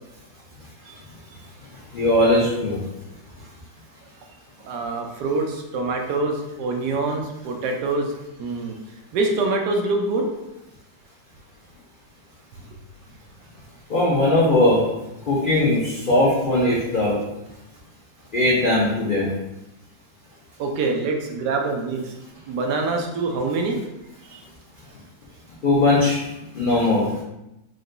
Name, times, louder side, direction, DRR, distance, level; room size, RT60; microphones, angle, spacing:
voice 1, 1.9-2.8 13.9-14.9 15.3-17.2 18.3-19.3 25.6-26.2 26.5-27.1, left 1 dB, 85° left, -6 dB, 0.4 m, -19 dB
voice 2, 4.6-8.1 8.4-8.8 9.1-10.3 20.6-22.1 22.5-23.8 24.3-24.4, right 3 dB, 75° right, 2 dB, 1.1 m, -25 dB
3.9 x 2.2 x 3.7 m, 0.91 s
omnidirectional pair, 1.9 m